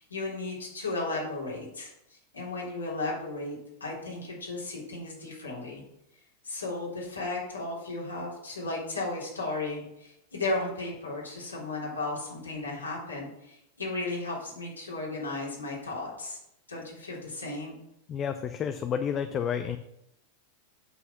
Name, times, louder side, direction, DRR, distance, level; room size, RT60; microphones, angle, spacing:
voice 1, 0.0-5.8 6.4-16.4 16.7-17.8, left 2 dB, 75° left, -5 dB, 3.4 m, -35 dB
voice 2, 18.1-19.8, left 7 dB, 30° left, 8 dB, 0.6 m, -30 dB
8.3 x 5.6 x 5.7 m, 0.84 s
figure-of-eight pair, 90°, 0 cm